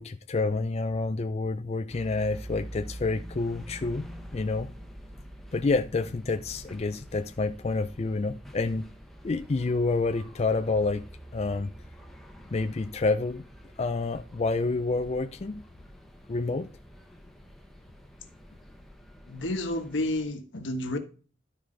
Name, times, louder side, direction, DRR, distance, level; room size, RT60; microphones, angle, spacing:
voice 1, 0.0-4.1 4.3-4.7 5.5-8.9 9.2-11.1 11.3-11.7 12.5-13.4 13.8-15.6 16.3-16.7, left 3 dB, 35° left, 0.4 m, -28 dB
sound 1, 1.9-20.2, equal, ahead, 1.0 m, -46 dB
voice 2, 19.3-21.0, left 1 dB, 85° left, 1.3 m, -30 dB
11.5 x 4.9 x 3.9 m
head